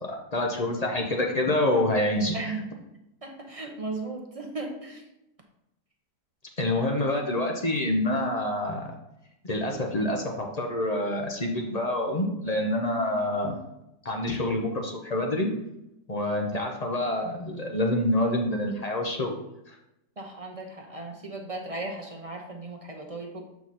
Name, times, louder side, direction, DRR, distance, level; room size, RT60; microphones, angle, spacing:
voice 1, 0.0-2.6 6.6-9.0 9.4-13.6 14.0-15.5 16.1-19.3 19.7-19.8, left 1 dB, 30° left, 2 dB, 0.7 m, -27 dB
voice 2, 3.2-5.0 20.2-23.4, right 2 dB, 30° right, 1 dB, 0.7 m, -36 dB
7.7 x 4.7 x 4.2 m, 0.87 s
omnidirectional pair, 1.8 m